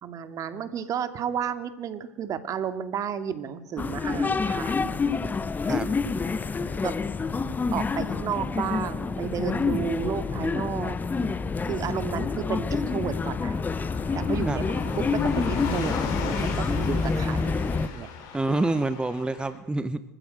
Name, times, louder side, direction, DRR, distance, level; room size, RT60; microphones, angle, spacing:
voice 1, 0.0-5.8 6.8-7.0 7.7-11.0 11.7-13.6 14.1-18.1, right 8 dB, 45° right, 11 dB, 2.4 m, -32 dB
sound 1, 3.8-17.9, left 4 dB, 20° left, 1.1 m, -27 dB
Car passing by / Truck, 5.2-19.6, left 6 dB, 55° left, 5.3 m, -40 dB
voice 2, 18.3-20.0, right 2 dB, 10° right, 13 dB, 1.0 m, -27 dB
26.0 x 15.5 x 7.9 m, 0.92 s
hypercardioid pair, 80°, 8 cm